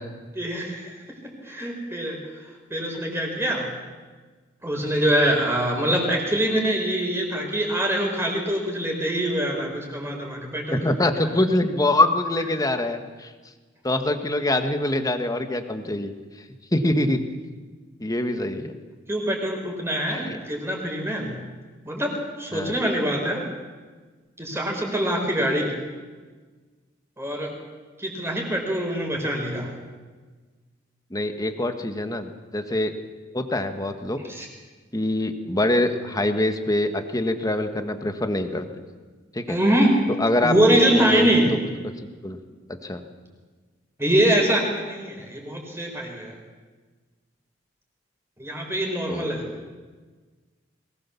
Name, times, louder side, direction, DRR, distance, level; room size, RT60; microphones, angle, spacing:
voice 1, 0.4-0.9 1.4-2.2 2.7-3.7 4.6-10.8 11.2-11.3 19.1-21.4 21.8-23.4 24.4-25.8 27.2-27.5 28.0-29.7 34.3-34.5 39.5-40.0 40.4-41.5 44.0-46.3 48.4-49.4, right 1 dB, 15° right, 1 dB, 4.6 m, -24 dB
voice 2, 10.7-13.3 13.8-16.1 16.7-17.2 18.0-18.8 20.1-20.4 22.5-22.7 31.1-32.9 33.3-34.2 34.9-38.7 39.3-39.6 40.2-41.4 42.0-42.4 42.8-43.0 49.1-49.5, left 1 dB, 20° left, 7 dB, 1.5 m, -24 dB
22.5 x 19.5 x 7.1 m, 1.4 s
head